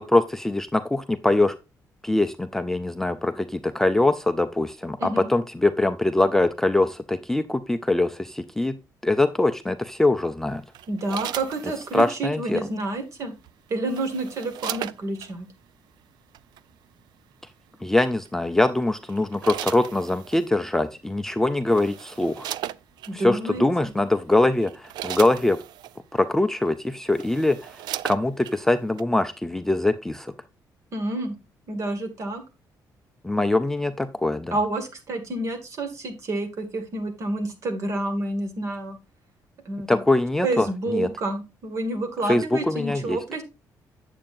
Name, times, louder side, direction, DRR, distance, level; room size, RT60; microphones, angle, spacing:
voice 1, 0.0-1.5 2.0-8.8 9.0-10.6 11.9-12.7 17.8-22.5 23.1-25.6 26.1-30.3 33.2-34.6 39.9-41.1 42.3-43.2, left 2 dB, 5° left, 8 dB, 0.4 m, -23 dB
sound 1, 10.7-12.1 13.4-15.3 16.3-16.6 18.3-18.6 19.1-20.5 21.3-21.4 21.7-23.1 23.9-24.0 24.5-26.0 26.7-26.8 27.0-28.6 29.0-29.1, right 12 dB, 80° right, 0.4 m, -36 dB
voice 2, 10.9-13.3 13.7-15.5 23.1-23.9 30.9-31.4 31.7-32.4 34.5-39.0 39.7-40.0 40.4-43.4, right 2 dB, 45° right, 7 dB, 1.8 m, -29 dB
8.8 x 7.5 x 2.5 m, 0.26 s
cardioid pair, 165°, 7 cm